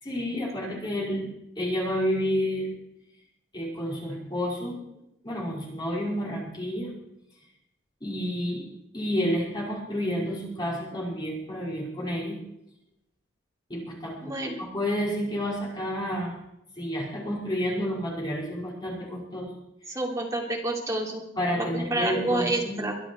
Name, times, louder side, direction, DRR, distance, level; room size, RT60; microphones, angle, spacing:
voice 1, 0.0-1.3 1.6-2.7 3.5-4.8 5.2-6.9 8.0-8.6 8.9-12.4 13.7-16.4 16.7-19.5 21.4-22.8, equal, 20° left, -3 dB, 4.8 m, -30 dB
voice 2, 14.2-14.6 19.9-21.2 21.5-22.9, right 2 dB, 15° right, -1 dB, 2.9 m, -29 dB
23.0 x 11.0 x 4.5 m, 0.80 s
head